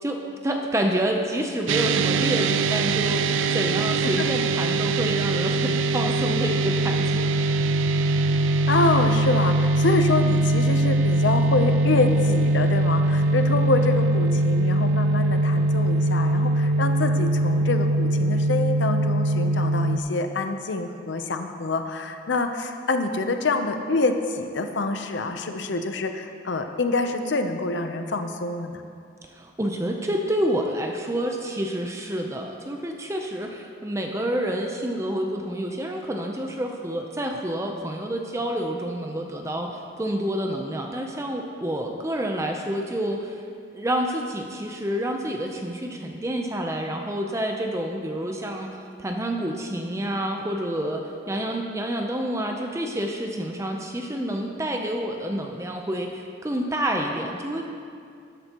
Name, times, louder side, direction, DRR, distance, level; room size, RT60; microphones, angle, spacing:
voice 1, 0.0-7.2 29.3-43.3 43.7-57.7, right 1 dB, 15° right, 2 dB, 0.6 m, -28 dB
sound 1, 1.7-20.0, right 2 dB, 85° right, 0.4 m, -22 dB
voice 2, 8.7-28.8, left 3 dB, 70° left, 6 dB, 0.7 m, -26 dB
12.5 x 12.0 x 3.0 m, 2.4 s
head